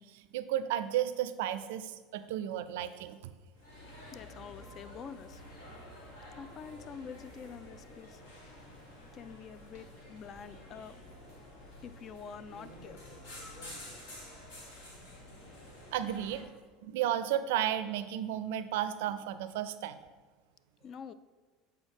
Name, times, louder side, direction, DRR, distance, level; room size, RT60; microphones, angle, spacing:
voice 1, 0.1-3.2 15.9-16.5 16.8-20.0, right 11 dB, 75° right, 12 dB, 0.4 m, -33 dB
sound 1, 3.5-16.4, left 1 dB, 75° left, 1.9 m, -50 dB
voice 2, 4.1-5.4 6.3-8.3 9.1-11.0 11.8-13.2 20.8-21.1, left 7 dB, 45° left, 15 dB, 0.3 m, -47 dB
7.9 x 4.6 x 3.5 m, 1.4 s
hypercardioid pair, 80°, 0 cm